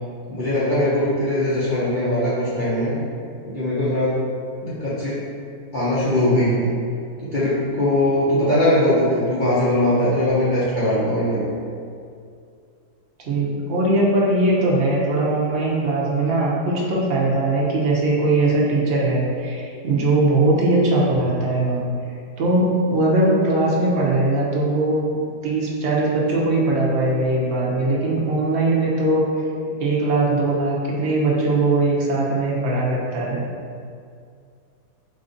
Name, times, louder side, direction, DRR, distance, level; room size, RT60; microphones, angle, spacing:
voice 1, 0.3-2.9 3.4-4.1 4.6-5.2 5.7-6.7 7.2-11.6, left 1 dB, 50° left, -10 dB, 0.6 m, -20 dB
voice 2, 13.2-21.8 22.4-29.2 29.8-33.4, right 2 dB, 50° right, -5 dB, 0.9 m, -20 dB
4.2 x 2.6 x 3.8 m, 2.3 s
omnidirectional pair, 1.7 m